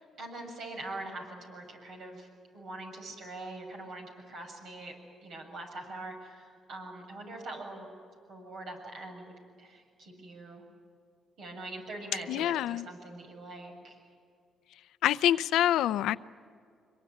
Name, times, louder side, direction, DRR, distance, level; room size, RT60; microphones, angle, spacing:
voice 1, 0.0-2.3 2.5-4.9 5.2-7.9 8.3-10.6 11.4-14.0, right 2 dB, 70° right, 2 dB, 7.1 m, -43 dB
voice 2, 12.3-12.9 15.0-16.2, left 12 dB, 85° left, 15 dB, 0.6 m, -26 dB
25.0 x 23.0 x 9.4 m, 2.3 s
cardioid pair, 90°, 0 cm